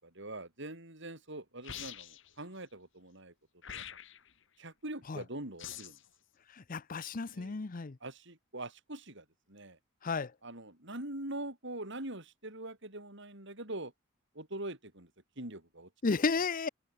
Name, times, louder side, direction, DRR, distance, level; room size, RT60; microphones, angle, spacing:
voice 1, 0.2-3.3 3.7-3.8 4.6-6.0 7.3-7.6 8.0-9.8 10.4-13.9 14.3-15.1 15.4-15.9, right 1 dB, 60° right, 7.0 m, -43 dB
sound 1, 1.6-2.3 3.6-4.3 5.6-6.1, left 10 dB, 65° left, 1.8 m, -45 dB
voice 2, 6.7-8.0 10.0-10.3 16.0-16.7, left 4 dB, 40° left, 0.6 m, -32 dB
head